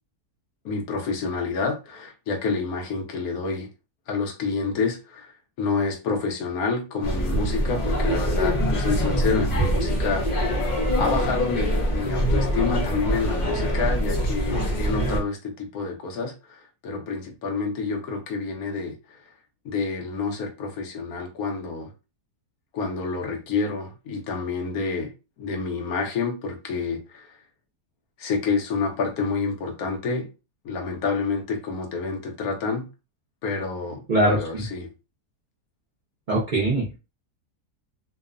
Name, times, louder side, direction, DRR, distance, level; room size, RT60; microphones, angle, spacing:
voice 1, 0.6-3.7 4.1-10.3 10.6-10.7 11.0-19.2 19.6-21.9 22.7-25.1 25.4-27.4 28.2-30.3 30.6-32.9 33.4-34.9, left 4 dB, 70° left, 1.1 m, -28 dB
sound 1, 7.0-15.2, equal, 45° left, 0.6 m, -24 dB
voice 2, 34.1-34.6 36.3-37.0, right 1 dB, 55° right, 0.5 m, -22 dB
2.9 x 2.0 x 2.4 m
omnidirectional pair, 1.7 m